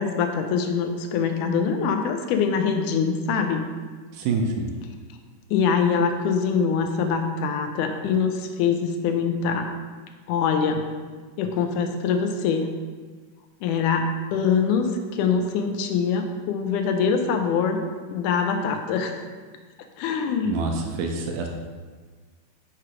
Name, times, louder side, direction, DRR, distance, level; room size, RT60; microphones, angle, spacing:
voice 1, 0.0-3.7 5.5-9.7 10.3-10.8 11.4-12.7 13.6-19.2 20.0-20.7, left 6 dB, 80° left, 5 dB, 2.0 m, -24 dB
voice 2, 4.1-4.7 20.4-21.5, right 3 dB, 80° right, 2 dB, 2.2 m, -26 dB
6.7 x 4.5 x 4.9 m, 1.4 s
omnidirectional pair, 3.8 m